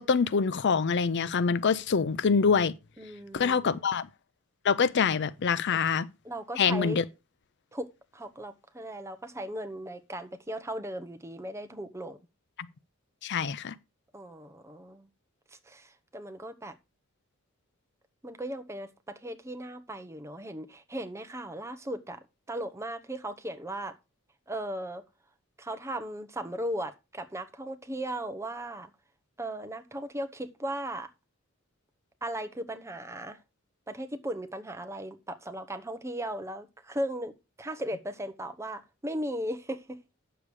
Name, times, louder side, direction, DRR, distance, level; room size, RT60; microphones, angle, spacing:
voice 1, 0.0-2.7 3.3-4.1 4.6-6.1 6.6-7.0 13.2-13.7, left 5 dB, 55° left, 0.5 m, -25 dB
voice 2, 3.0-4.0 6.2-7.0 7.7-12.2 14.1-15.1 15.6-16.7 18.2-23.9 24.5-25.0 25.6-28.9 29.4-31.1 32.2-33.4 33.9-40.0, right 1 dB, 15° right, 0.9 m, -37 dB
8.8 x 6.9 x 4.8 m
head